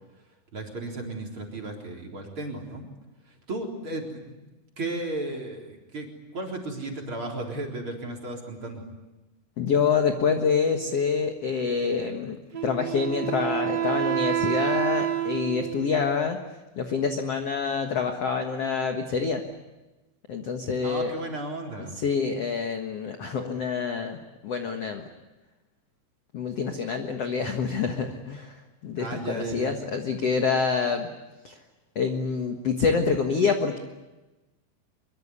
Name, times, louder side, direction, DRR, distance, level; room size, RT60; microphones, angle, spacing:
voice 1, 0.5-2.9 3.3-4.4 4.8-8.8 20.8-22.0 29.0-29.8, right 2 dB, 30° right, 1 dB, 4.3 m, -34 dB
voice 2, 9.6-12.4 12.6-16.4 16.7-19.4 20.3-21.1 22.0-25.0 26.3-28.5 28.8-31.1 31.4-31.6 31.9-33.8, left 5 dB, 70° left, 5 dB, 1.4 m, -26 dB
Wind instrument woodwind instrument, 12.5-16.1, right 12 dB, 60° right, 1.2 m, -28 dB
24.5 x 23.5 x 9.7 m, 1.1 s
omnidirectional pair, 5.2 m